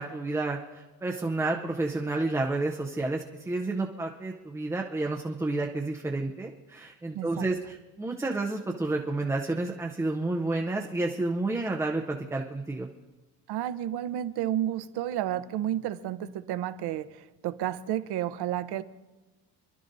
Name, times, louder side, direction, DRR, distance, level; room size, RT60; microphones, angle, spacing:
voice 1, 0.0-12.9, right 2 dB, 5° right, 0 dB, 0.5 m, -30 dB
voice 2, 7.1-7.5 13.5-18.8, right 12 dB, 75° right, 12 dB, 0.8 m, -31 dB
28.0 x 11.5 x 2.6 m, 1.2 s
cardioid pair, 180°, 40 cm